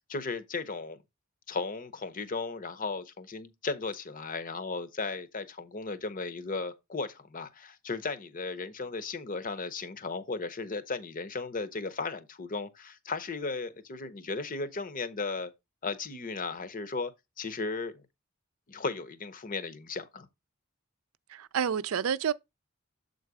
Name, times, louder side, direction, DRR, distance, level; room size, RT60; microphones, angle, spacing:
voice 1, 0.1-1.0 1.5-15.5 15.8-17.1 17.4-18.0 18.7-20.3, left 4 dB, 40° left, 0.8 m, -35 dB
voice 2, 21.3-22.3, right 8 dB, 80° right, 0.4 m, -29 dB
7.3 x 4.0 x 4.8 m
head